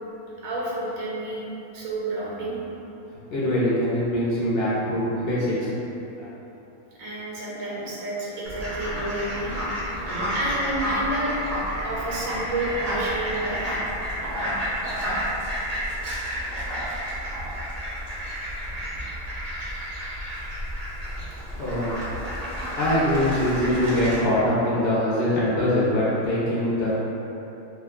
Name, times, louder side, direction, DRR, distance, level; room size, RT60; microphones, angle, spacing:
voice 1, 0.4-1.4 1.7-2.6 7.0-9.5 10.3-11.3 11.8-13.8 14.6-14.7 15.0-15.2 17.0-17.1, right 2 dB, 85° right, -6 dB, 1.1 m, -30 dB
voice 2, 3.3-6.3 21.6-22.0 22.5-27.0, left 1 dB, 55° left, -9 dB, 0.7 m, -23 dB
Fowl, 8.4-24.1, equal, 40° right, 0.6 m, -30 dB
2.6 x 2.3 x 3.5 m, 3.0 s
omnidirectional pair, 1.4 m